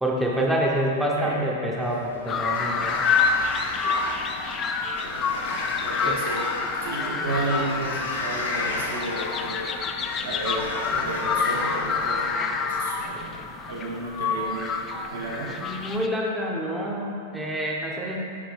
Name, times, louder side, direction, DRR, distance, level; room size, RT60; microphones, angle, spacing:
voice 1, 0.0-3.0 6.1-6.2 15.6-18.2, right 1 dB, 5° right, -3 dB, 0.7 m, -27 dB
Sliding door, 1.8-12.3, left 1 dB, 75° left, 1.1 m, -35 dB
sound 1, 2.3-16.1, left 5 dB, 25° left, 0.4 m, -28 dB
voice 2, 5.8-6.5 6.8-9.7 10.2-13.3 13.7-14.8 15.1-15.6, right 2 dB, 65° right, -4 dB, 1.3 m, -32 dB
5.7 x 5.2 x 3.3 m, 2.4 s
figure-of-eight pair, 95°, 0 cm